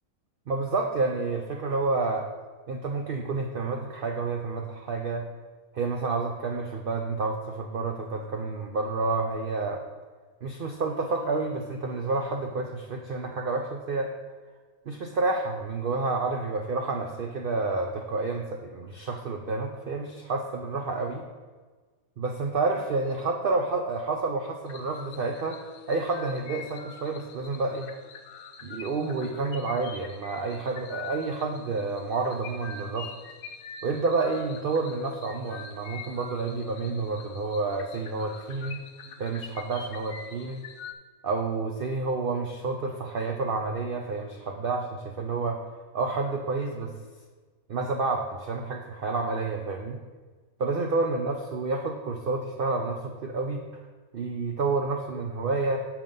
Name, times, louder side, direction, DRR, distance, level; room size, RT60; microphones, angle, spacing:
voice 1, 0.5-2.3 2.7-5.3 5.7-9.8 10.4-14.1 14.9-21.2 22.2-25.6 25.9-27.9 28.6-33.1 33.8-38.8 39.2-40.6 41.2-45.6 45.9-46.9 47.7-50.0 50.6-53.6 54.1-55.8, right 3 dB, 70° right, 3 dB, 0.5 m, -29 dB
sound 1, 24.7-40.9, left 6 dB, 75° left, 0.5 m, -45 dB
6.7 x 5.8 x 5.3 m, 1.4 s
omnidirectional pair, 1.6 m